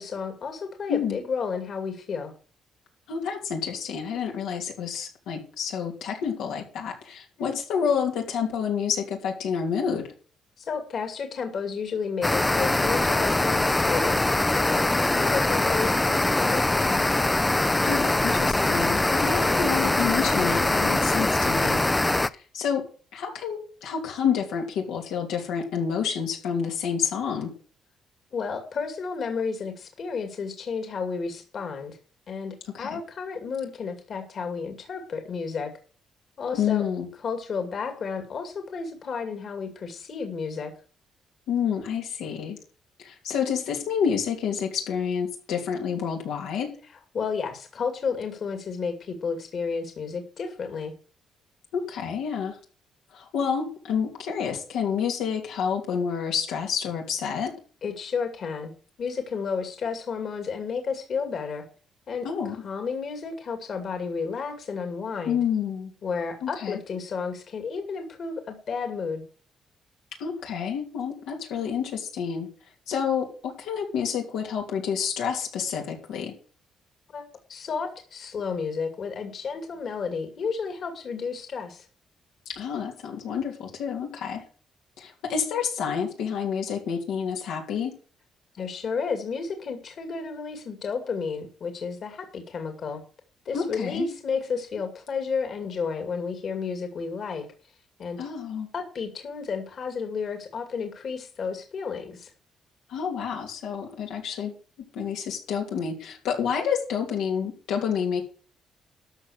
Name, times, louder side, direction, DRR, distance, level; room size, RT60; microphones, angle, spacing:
voice 1, 0.0-2.3 7.4-7.6 10.6-14.2 14.6-17.0 28.3-32.0 32.3-35.7 36.4-36.8 37.2-40.7 47.1-50.9 57.8-58.7 59.0-61.6 62.1-62.3 62.6-65.4 66.0-69.2 77.1-81.9 88.5-93.0 93.5-97.5 98.0-98.2 98.7-102.3, left 5 dB, 55° left, 5 dB, 2.4 m, -32 dB
voice 2, 0.9-1.2 3.1-10.0 17.8-21.8 22.3-22.8 23.1-27.5 32.7-33.0 36.5-37.1 41.5-42.6 43.0-46.7 51.7-52.6 53.1-57.5 62.2-62.6 65.3-65.9 66.4-66.8 70.2-72.5 72.9-76.3 82.5-84.4 85.0-87.9 93.5-94.1 98.2-98.7 102.9-104.5 104.9-108.2, left 7 dB, 90° left, 0 dB, 2.9 m, -29 dB
sound 1, 12.2-22.3, left 2 dB, 15° left, 0.5 m, -23 dB
13.0 x 6.0 x 6.5 m, 0.41 s
cardioid pair, 90°, 0 cm